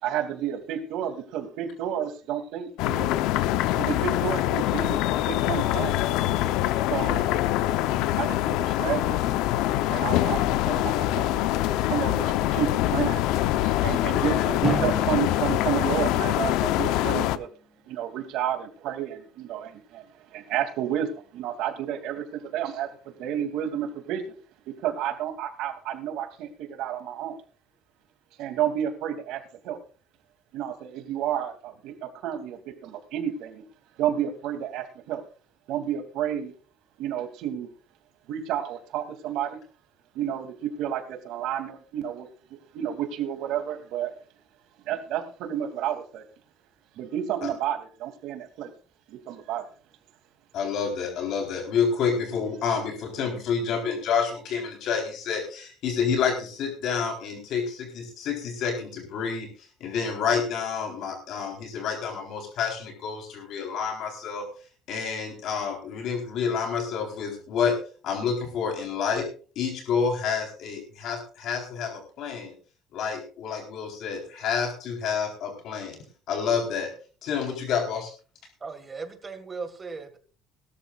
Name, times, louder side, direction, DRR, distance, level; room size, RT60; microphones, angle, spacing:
voice 1, 0.0-3.1 3.8-5.0 5.3-5.9 6.9-7.3 8.2-9.2 9.9-13.2 13.6-17.5 17.9-24.3 24.7-27.4 28.4-29.8 30.5-33.6 34.0-35.2 35.7-36.5 37.0-37.7 38.3-39.6 40.1-42.3 42.7-44.1 44.8-46.2 47.0-48.7 49.1-49.7, right 10 dB, 65° right, 6 dB, 2.8 m, -31 dB
sound 1, 2.8-17.4, left 14 dB, 80° left, 0.8 m, -24 dB
Drum, 14.6-17.3, left 1 dB, 15° left, 2.3 m, -34 dB
voice 2, 50.5-59.5 59.8-64.4 64.9-67.7 68.0-69.3 69.6-72.5 72.9-76.0 76.3-76.9 77.2-78.1, left 6 dB, 55° left, 3 dB, 4.1 m, -28 dB
voice 3, 78.6-80.2, right 4 dB, 20° right, 8 dB, 2.0 m, -37 dB
20.5 x 13.0 x 2.5 m, 0.38 s
cardioid pair, 165°, 0 cm